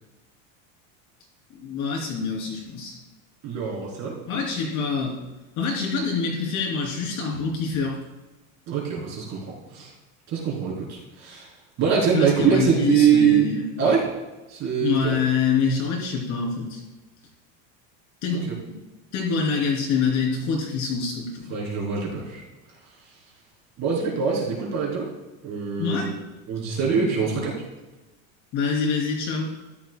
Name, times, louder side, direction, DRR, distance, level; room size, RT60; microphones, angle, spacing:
voice 1, 1.5-3.0 4.3-5.2 5.6-8.0 12.1-13.9 14.8-16.8 18.2-18.8 19.1-21.5 25.8-26.1 28.5-29.5, left 5 dB, 45° left, -1 dB, 3.5 m, -25 dB
voice 2, 3.4-4.2 8.7-9.9 10.3-11.5 11.8-13.4 13.8-14.0 14.5-15.2 18.3-18.4 21.5-22.4 23.8-25.1 25.4-26.1 26.5-27.6, right 7 dB, 40° right, -4 dB, 3.8 m, -23 dB
13.5 x 11.0 x 2.3 m, 1.1 s
supercardioid pair, 155°, 41 cm